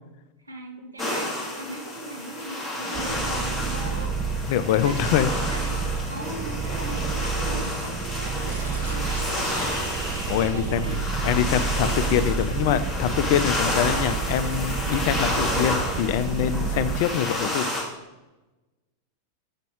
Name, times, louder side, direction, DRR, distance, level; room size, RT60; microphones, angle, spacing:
voice 1, 0.5-4.1 4.7-5.2 5.5-5.7 6.1-9.9 10.4-11.5, right 2 dB, 80° right, 1 dB, 1.2 m, -39 dB
sound 1, 1.0-17.8, left 1 dB, ahead, 1.9 m, -30 dB
sound 2, 2.9-17.0, right 5 dB, 30° right, 0.7 m, -29 dB
voice 2, 4.5-5.3 5.8-5.9 10.3-17.7, left 10 dB, 50° left, 13 dB, 0.4 m, -24 dB
sound 3, 8.5-12.0, right 2 dB, 65° right, 2.2 m, -41 dB
7.2 x 5.8 x 3.6 m, 1.1 s
figure-of-eight pair, 90°, 0 cm